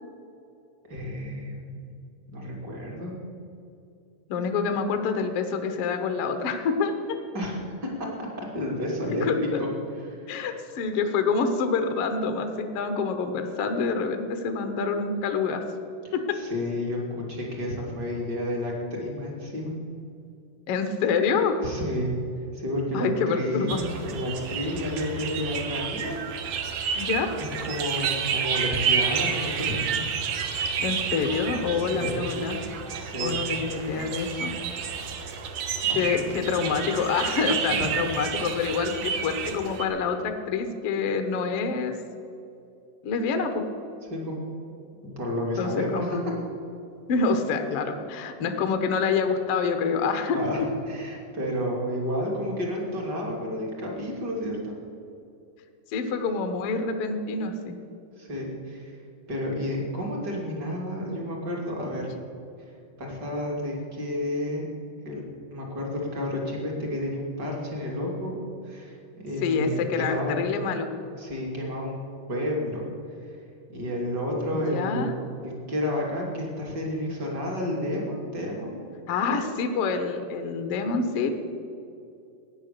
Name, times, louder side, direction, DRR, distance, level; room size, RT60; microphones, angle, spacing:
voice 1, 0.9-1.8 2.3-3.1 7.3-7.6 8.0-9.7 10.1-10.3 16.0-19.7 21.6-22.1 22.5-23.8 24.1-26.2 27.7-30.0 31.9-32.2 33.0-33.3 35.9-36.0 37.7-37.8 44.1-44.4 45.2-46.3 50.3-50.6 50.9-54.7 58.2-58.9 59.3-62.1 63.0-64.7 65.0-68.3 68.6-70.4 71.2-72.0 72.3-72.8 73.3-73.4 73.7-75.2 75.4-78.8, left 1 dB, 30° right, -2 dB, 2.7 m, -31 dB
voice 2, 4.3-7.2 9.2-9.6 10.3-15.6 16.1-16.4 20.7-21.6 22.9-24.0 26.9-27.3 30.8-32.6 33.2-34.5 35.9-42.0 43.0-43.6 45.6-46.2 47.1-50.7 55.9-57.8 69.4-70.9 74.7-75.1 79.1-81.3, left 5 dB, 85° left, 7 dB, 1.3 m, -27 dB
sound 1, 23.7-39.9, right 7 dB, 70° right, 1.8 m, -30 dB
16.5 x 9.8 x 6.8 m, 2.6 s
omnidirectional pair, 4.5 m